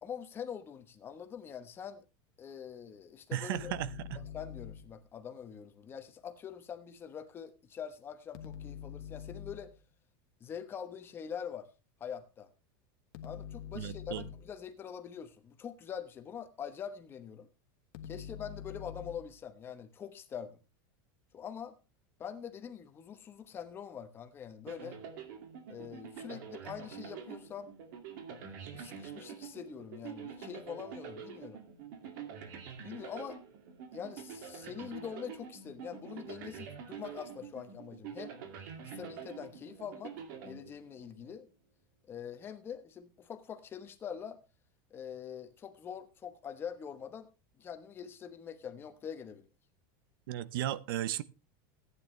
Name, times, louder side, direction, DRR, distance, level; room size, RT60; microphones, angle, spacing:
voice 1, 0.0-2.0 2.4-3.7 4.1-9.7 10.4-11.7 12.0-12.5 13.2-17.5 18.0-20.6 21.3-21.8 22.2-25.0 25.7-27.7 28.7-31.6 32.8-33.4 33.9-38.3 39.0-40.1 40.4-41.5 42.1-44.4 44.9-47.3 47.6-49.5, left 8 dB, 20° left, 1.0 m, -44 dB
voice 2, 3.3-4.2 13.7-14.2 50.3-51.2, right 13 dB, 75° right, 0.7 m, -35 dB
sound 1, 3.5-5.0 8.3-9.8 13.1-14.6 17.9-19.4, left 8 dB, 60° left, 1.2 m, -45 dB
sound 2, 24.7-41.2, right 7 dB, 60° right, 2.3 m, -46 dB
15.0 x 9.4 x 3.2 m
supercardioid pair, 175°, 12 cm